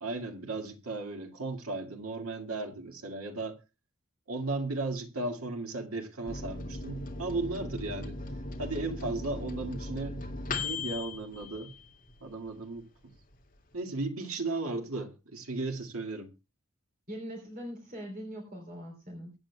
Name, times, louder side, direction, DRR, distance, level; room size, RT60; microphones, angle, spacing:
voice 1, 0.0-3.6 4.3-8.2 8.6-10.2 10.6-11.7 12.2-12.9 13.7-16.3, right 2 dB, 85° right, 2.1 m, -35 dB
Microwave oven, 6.3-12.4 12.8-12.9 13.1-13.7, left 3 dB, 40° left, 2.2 m, -38 dB
voice 2, 17.1-19.3, equal, 40° right, 3.3 m, -41 dB
23.0 x 9.2 x 2.3 m
head